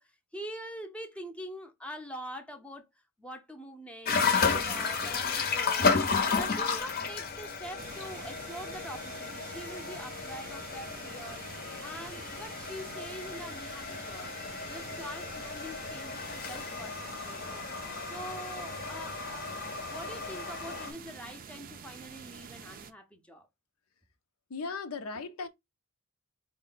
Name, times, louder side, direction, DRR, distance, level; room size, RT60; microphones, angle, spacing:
voice 1, 0.0-2.9 3.2-14.3 14.6-17.7 18.0-19.5 19.9-23.5, equal, 5° left, 0.6 m, -44 dB
sound 1, 4.1-20.9, left 5 dB, 45° left, 0.7 m, -33 dB
sound 2, 7.8-22.9, right 6 dB, 40° right, 0.4 m, -48 dB
voice 2, 24.5-25.5, left 4 dB, 85° left, 0.6 m, -37 dB
4.5 x 2.1 x 3.9 m
head